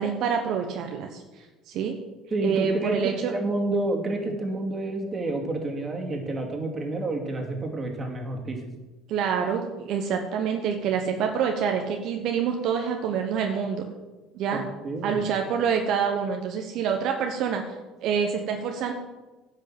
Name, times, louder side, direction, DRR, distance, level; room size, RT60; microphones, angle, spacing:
voice 1, 0.0-2.0 2.4-3.3 9.1-13.9 14.3-14.6 15.0-17.7 18.0-18.9, right 7 dB, 60° right, 3 dB, 1.0 m, -27 dB
voice 2, 2.3-8.6 14.5-15.2, right 2 dB, 25° right, 1 dB, 2.6 m, -29 dB
10.5 x 5.4 x 7.6 m, 1.2 s
supercardioid pair, 90°, 0 cm